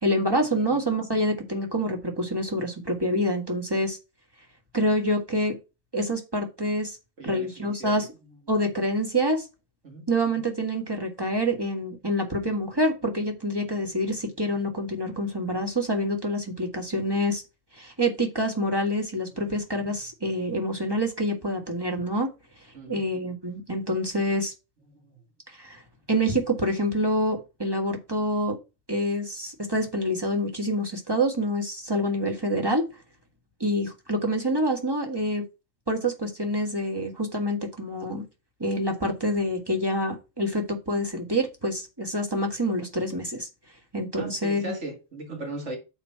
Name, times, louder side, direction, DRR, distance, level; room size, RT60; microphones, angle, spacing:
voice 1, 0.0-4.0 4.7-5.6 5.9-7.0 7.2-8.1 8.5-9.4 10.1-17.4 17.7-22.3 22.9-24.5 25.5-25.8 26.1-28.6 28.9-32.8 33.6-35.4 35.9-38.2 38.6-43.5 43.9-44.7, equal, 20° right, 1.7 m, -27 dB
voice 2, 7.2-8.0 9.8-10.1 19.3-19.5 22.7-23.0 44.2-45.8, right 2 dB, 60° right, 2.1 m, -38 dB
6.8 x 4.5 x 5.7 m
omnidirectional pair, 1.4 m